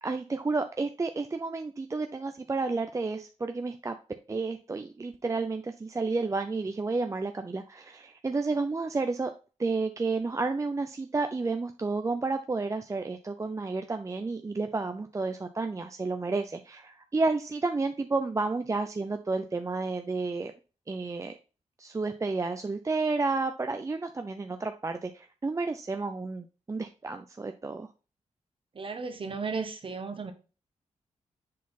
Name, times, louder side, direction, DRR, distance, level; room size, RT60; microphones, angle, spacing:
voice 1, 0.0-3.9 4.3-9.3 9.6-20.5 20.9-21.3 21.8-27.9, right 3 dB, 25° right, 0.5 m, -31 dB
voice 2, 28.7-30.3, right 4 dB, 45° right, 1.3 m, -34 dB
7.4 x 4.1 x 4.0 m
wide cardioid pair, 95°, 12 cm